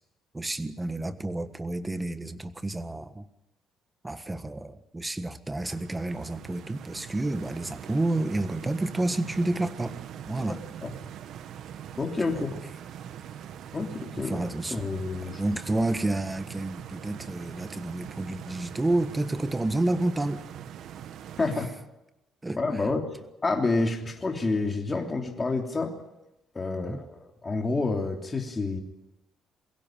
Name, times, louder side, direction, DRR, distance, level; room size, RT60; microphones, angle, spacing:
voice 1, 0.3-3.3 4.0-10.0 10.3-10.6 12.3-12.5 14.2-14.8 15.4-20.4 22.4-22.9 26.7-27.0, right 2 dB, 15° right, 10 dB, 1.4 m, -30 dB
Stream, 5.6-21.7, right 9 dB, 65° right, 1.2 m, -42 dB
voice 2, 10.4-10.9 12.0-12.5 13.7-14.4 14.7-15.4 21.4-21.7 22.6-23.1 23.4-25.9 26.5-28.8, left 3 dB, 20° left, 2 dB, 3.0 m, -29 dB
23.0 x 16.5 x 9.2 m, 0.93 s
cardioid pair, 130°, 0 cm